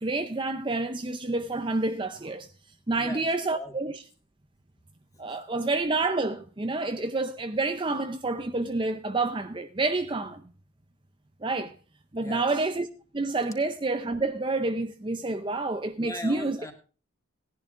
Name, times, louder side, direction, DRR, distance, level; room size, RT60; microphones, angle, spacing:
voice 1, 0.0-2.5 2.9-4.0 5.2-10.4 11.4-11.8 12.1-12.9 13.1-16.6, right 3 dB, 25° right, 0.6 m, -28 dB
voice 2, 3.0-3.7 5.3-5.4 12.2-12.5 16.0-16.7, left 1 dB, 15° left, 2.0 m, -40 dB
18.0 x 11.0 x 2.5 m
head